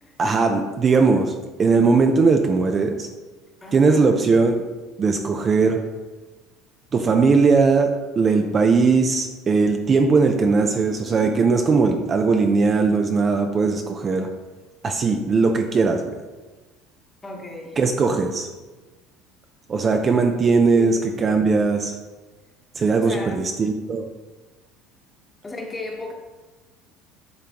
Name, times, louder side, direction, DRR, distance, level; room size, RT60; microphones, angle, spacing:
voice 1, 0.2-1.3 1.6-3.1 3.7-4.6 5.0-5.8 6.9-14.3 14.8-16.1 17.8-18.5 19.7-22.0 22.8-24.1, right 4 dB, 30° right, 5 dB, 0.4 m, -19 dB
voice 2, 3.6-4.1 17.2-17.8 20.7-21.1 22.9-23.5 25.4-26.1, left 2 dB, 15° left, 1 dB, 1.1 m, -35 dB
10.5 x 3.6 x 2.9 m, 1.2 s
cardioid pair, 130°, 0 cm